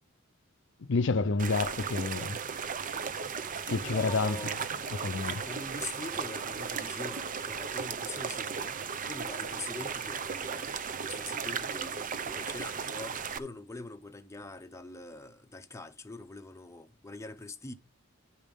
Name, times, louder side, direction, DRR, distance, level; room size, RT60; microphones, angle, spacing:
voice 1, 0.9-2.4 3.7-4.4 5.0-5.4, left 3 dB, 60° left, 0.6 m, -29 dB
sound 1, 1.4-13.4, right 6 dB, 40° right, 0.7 m, -36 dB
voice 2, 3.6-4.6 5.3-10.7 11.0-17.7, left 2 dB, 15° left, 0.7 m, -43 dB
10.0 x 5.2 x 5.3 m
head